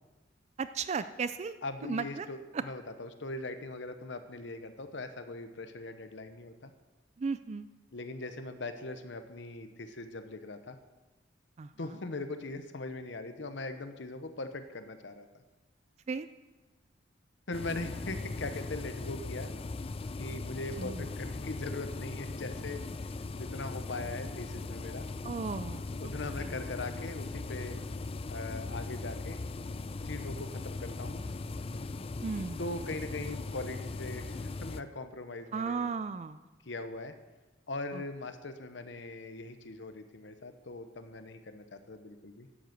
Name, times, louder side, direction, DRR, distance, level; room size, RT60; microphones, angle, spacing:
voice 1, 0.6-1.6 1.9-2.3 2.5-2.6 7.2-7.7 11.6-11.7 16.1-16.3 20.8-21.1 25.2-26.1 26.4-26.5 32.2-32.6 35.5-36.4 37.9-38.0, right 5 dB, 35° right, 12 dB, 0.3 m, -35 dB
voice 2, 1.6-6.7 7.9-10.8 11.8-15.3 17.5-19.5 20.2-22.8 23.4-25.0 26.0-27.8 28.3-29.4 30.0-31.2 32.6-35.9 36.7-37.1 37.7-42.5, left 2 dB, 70° left, 9 dB, 0.9 m, -40 dB
sound 1, 17.5-34.8, left 3 dB, 30° left, 0.4 m, -39 dB
11.5 x 7.8 x 8.0 m, 1.2 s
head